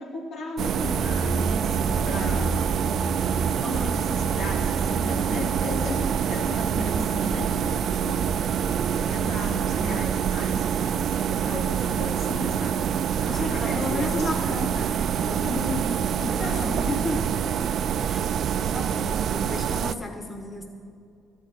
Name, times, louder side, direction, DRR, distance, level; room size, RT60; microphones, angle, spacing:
voice 1, 0.0-2.5 3.5-8.3 9.1-12.8 13.2-14.3 16.2-16.9, left 2 dB, 75° left, -1 dB, 2.6 m, -35 dB
sound 1, 0.6-19.9, right 8 dB, 60° right, 0.3 m, -26 dB
sound 2, 0.8-10.1, right 2 dB, 20° right, 0.6 m, -33 dB
voice 2, 13.3-17.2 18.1-18.3 18.6-20.7, left 2 dB, 20° left, 3 dB, 1.1 m, -32 dB
13.0 x 6.5 x 8.9 m, 2.4 s
cardioid pair, 110°, 0 cm